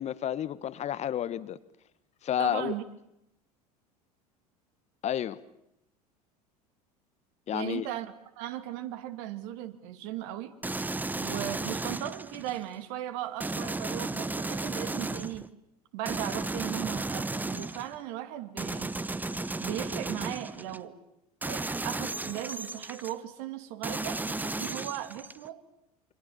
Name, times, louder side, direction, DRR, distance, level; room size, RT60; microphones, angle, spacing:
voice 1, 0.0-1.6 2.2-2.7 5.0-5.4 7.5-7.9, left 10 dB, 35° left, 1.1 m, -30 dB
voice 2, 2.4-2.8 7.5-10.6 11.2-15.5 15.9-19.0 19.6-21.0 21.5-25.6, right 13 dB, 55° right, 2.3 m, -37 dB
sound 1, 10.6-12.6 13.4-15.5 16.1-18.0 18.6-20.8 21.4-23.1 23.8-25.5, right 2 dB, 10° right, 1.0 m, -34 dB
28.5 x 25.5 x 7.2 m
figure-of-eight pair, 70°, 20 cm